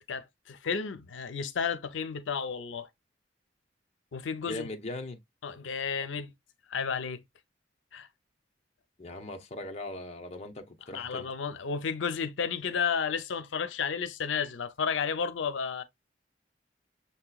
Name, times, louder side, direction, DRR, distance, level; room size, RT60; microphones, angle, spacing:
voice 1, 0.1-2.9 4.1-4.7 5.4-6.3 6.7-7.2 7.9-8.1 10.8-15.8, left 6 dB, 90° left, 0.5 m, -32 dB
voice 2, 4.4-5.2 9.0-11.3, left 2 dB, 35° left, 0.7 m, -40 dB
6.5 x 2.9 x 2.2 m
head